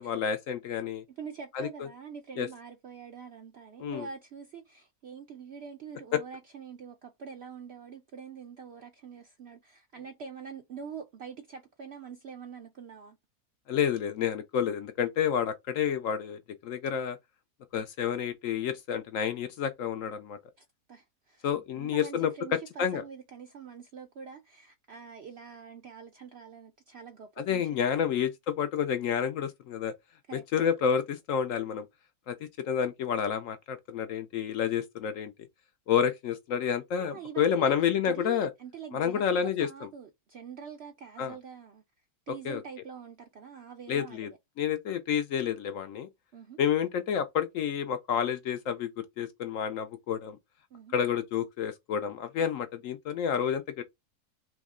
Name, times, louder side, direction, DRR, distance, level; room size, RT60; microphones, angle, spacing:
voice 1, 0.0-1.0 1.5-1.9 2.4-2.5 3.8-4.1 6.1-6.2 13.7-17.2 17.7-20.4 21.4-22.3 22.8-23.0 27.4-29.9 30.3-31.9 32.3-32.4 32.6-35.3 35.9-38.5 38.9-39.9 41.2-41.4 42.4-42.6 43.9-44.3 44.6-46.1 46.6-48.9 49.2-50.4 50.9-53.8, left 8 dB, 70° left, 0.8 m, -29 dB
voice 2, 1.1-13.2 20.6-27.7 30.3-30.4 36.9-37.7 38.1-41.8 42.3-44.3 46.3-46.6 50.7-50.9, right 7 dB, 70° right, 0.6 m, -45 dB
3.5 x 3.1 x 3.6 m
omnidirectional pair, 1.7 m